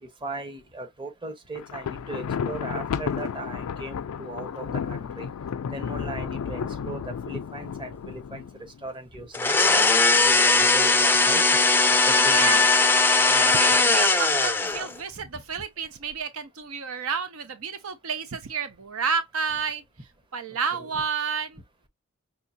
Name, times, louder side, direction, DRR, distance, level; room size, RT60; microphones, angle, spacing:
voice 1, 0.0-5.3 5.7-8.5 8.8-11.4 12.0-12.7 13.3-13.8 20.7-20.9, right 2 dB, 25° right, 1.0 m, -38 dB
Thunder, 1.5-8.8, left 7 dB, 90° left, 0.4 m, -32 dB
sound 1, 9.3-15.0, left 3 dB, 10° left, 0.4 m, -19 dB
voice 2, 12.2-12.7 13.5-19.8 20.3-21.6, right 6 dB, 70° right, 0.6 m, -30 dB
5.5 x 2.3 x 2.7 m
head